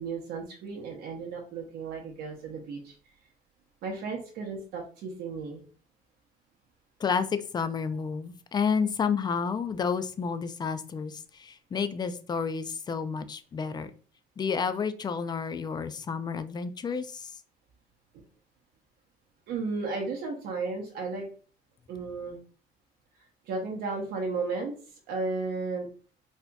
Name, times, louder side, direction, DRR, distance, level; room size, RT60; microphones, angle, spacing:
voice 1, 0.0-2.9 3.8-5.6 19.5-21.3 21.9-22.4 23.4-25.9, right 4 dB, 80° right, 0 dB, 0.9 m, -34 dB
voice 2, 7.0-13.9 14.4-17.3, left 6 dB, 25° left, 11 dB, 0.4 m, -30 dB
4.2 x 2.8 x 2.3 m, 0.40 s
cardioid pair, 110°, 17 cm